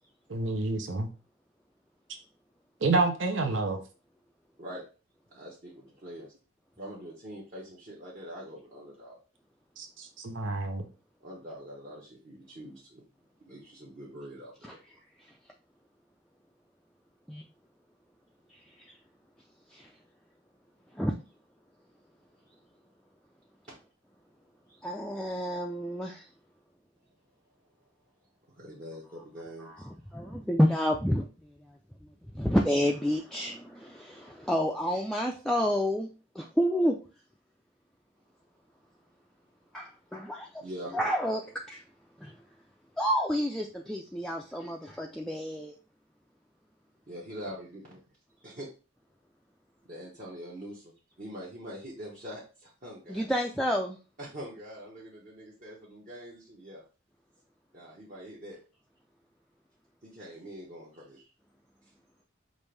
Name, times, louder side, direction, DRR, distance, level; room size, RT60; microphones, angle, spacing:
voice 1, 0.3-1.1 2.8-3.8 9.8-10.8, right 3 dB, 80° right, 4 dB, 0.8 m, -28 dB
voice 2, 5.3-6.3 6.8-9.2 11.2-13.0 13.5-14.8 24.7-24.8 28.5-29.9 40.6-41.0 47.1-48.0 48.4-48.7 49.9-53.3 54.2-56.8 57.7-58.6 60.0-61.3, equal, 45° right, -6 dB, 1.1 m, -44 dB
voice 3, 18.5-19.0 19.7-19.9 20.9-21.1 24.8-26.3 29.6-31.3 32.3-36.1 36.3-37.0 39.7-40.6 40.9-41.4 41.7-41.8 42.2-42.4 43.0-45.7 53.1-54.0, equal, 5° left, 0 dB, 0.4 m, -29 dB
5.3 x 2.6 x 3.2 m, 0.34 s
head